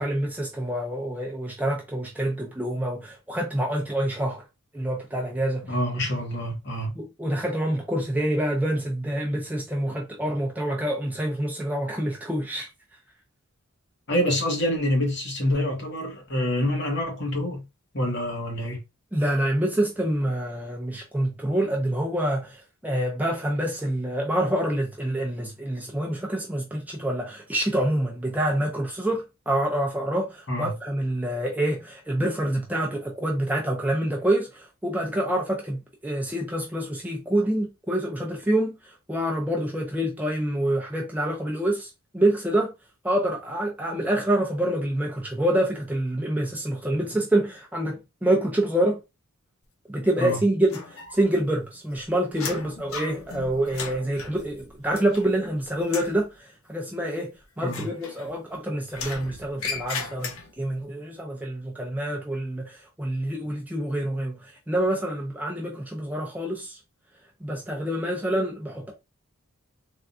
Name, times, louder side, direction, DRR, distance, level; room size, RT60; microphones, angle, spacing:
voice 1, 0.0-4.4 4.7-5.8 7.0-12.7 19.1-42.7 43.0-49.0 49.9-57.3 57.6-66.8 67.4-68.9, right 1 dB, 10° right, 0.5 m, -27 dB
voice 2, 5.7-6.9 14.1-17.6 17.9-18.8 30.5-30.7 50.2-50.4 57.6-57.9, left 1 dB, 50° left, 1.1 m, -26 dB
sound 1, 50.7-51.5 51.7-55.5 55.8-56.2 57.6-58.5 58.9-60.7, left 5 dB, 75° left, 0.6 m, -37 dB
3.5 x 2.2 x 2.6 m
head